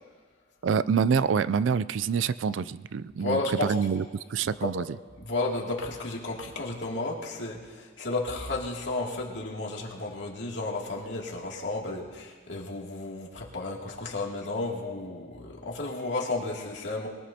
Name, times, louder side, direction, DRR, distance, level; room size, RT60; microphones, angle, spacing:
voice 1, 0.6-4.0 4.3-4.8, right 6 dB, 80° right, 16 dB, 0.4 m, -26 dB
voice 2, 3.2-3.7 4.6-4.7 5.2-17.1, left 2 dB, 70° left, -2 dB, 2.6 m, -32 dB
22.0 x 19.5 x 2.9 m, 1.5 s
head